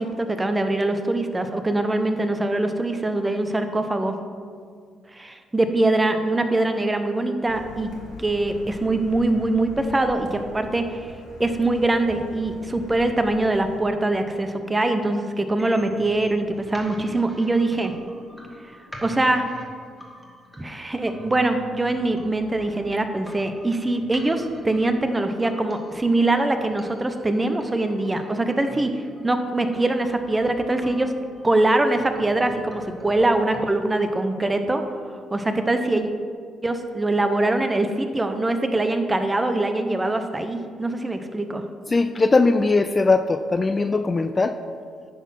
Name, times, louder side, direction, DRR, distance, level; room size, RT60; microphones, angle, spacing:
voice 1, 0.0-4.1 5.1-7.9 8.2-11.1 11.4-17.9 19.0-19.5 20.6-31.1 31.4-34.9 35.3-36.1 36.6-41.6, right 2 dB, 20° right, 7 dB, 0.7 m, -23 dB
Car, 7.5-13.8, left 1 dB, 85° left, 1.5 m, -42 dB
sound 1, 15.6-33.6, equal, ahead, 1.4 m, -45 dB
voice 2, 41.9-44.6, left 3 dB, 25° left, 9 dB, 0.3 m, -20 dB
10.0 x 4.1 x 5.7 m, 2.1 s
cardioid pair, 90°, 0 cm